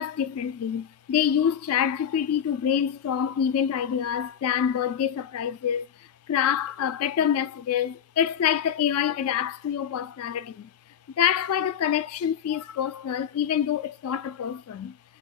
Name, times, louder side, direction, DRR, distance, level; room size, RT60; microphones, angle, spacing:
voice 1, 0.0-10.7 11.2-15.0, left 9 dB, 80° left, 0.3 m, -26 dB
3.8 x 3.6 x 2.2 m
head